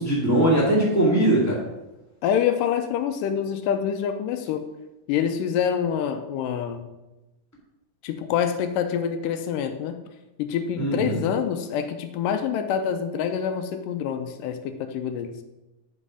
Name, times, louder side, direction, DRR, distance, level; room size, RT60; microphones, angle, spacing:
voice 1, 0.0-1.6 10.8-11.2, right 1 dB, 15° left, -4 dB, 0.6 m, -20 dB
voice 2, 2.2-4.7 5.1-6.9 8.0-10.0 10.4-15.4, left 8 dB, 80° left, 8 dB, 2.0 m, -26 dB
7.7 x 5.4 x 4.9 m, 1.0 s
omnidirectional pair, 4.2 m